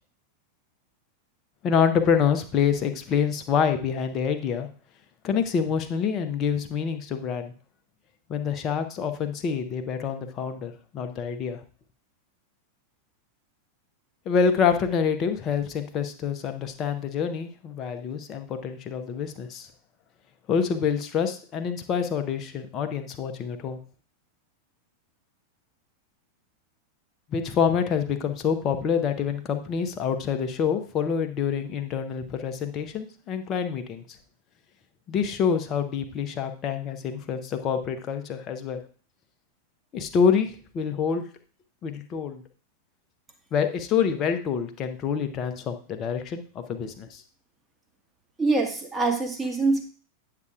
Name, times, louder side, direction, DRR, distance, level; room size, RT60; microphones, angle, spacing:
voice 1, 1.6-4.7 5.2-7.5 8.3-11.6 14.3-19.7 20.5-23.8 27.3-34.0 35.1-38.8 39.9-41.3 41.8-42.4 43.5-47.2, left 7 dB, 30° left, 7 dB, 0.8 m, -26 dB
voice 2, 48.4-49.9, right 3 dB, 10° right, 3 dB, 1.5 m, -24 dB
9.5 x 6.7 x 2.5 m, 0.40 s
figure-of-eight pair, 90°, 0 cm